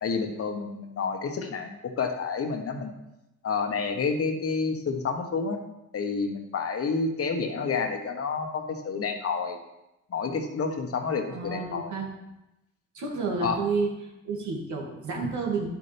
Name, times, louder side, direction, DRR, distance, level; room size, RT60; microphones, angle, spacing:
voice 1, 0.0-2.9 3.4-5.6 5.9-9.6 10.1-11.9 13.4-13.6 15.2-15.3, left 5 dB, 50° left, 4 dB, 1.3 m, -29 dB
voice 2, 11.3-12.1 12.9-13.9 14.2-15.7, right 4 dB, 70° right, -1 dB, 2.3 m, -30 dB
10.5 x 7.1 x 3.4 m, 0.91 s
cardioid pair, 90°, 30 cm